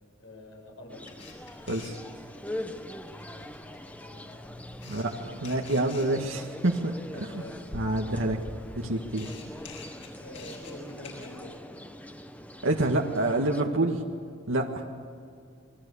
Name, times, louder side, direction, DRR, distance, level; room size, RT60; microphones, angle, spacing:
voice 1, 0.2-1.1 3.9-4.3 7.1-7.9 10.2-11.6, left 1 dB, 80° left, 1 dB, 7.6 m, -45 dB
sound 1, 0.9-13.6, left 1 dB, 10° left, 1.2 m, -43 dB
Camera, 1.0-11.4, left 2 dB, 65° left, 7.9 m, -47 dB
voice 2, 5.4-7.4 7.7-8.4 8.7-9.3 12.6-14.0 14.5-15.0, right 2 dB, 80° right, 1 dB, 1.8 m, -27 dB
28.5 x 21.5 x 8.5 m, 2.3 s
head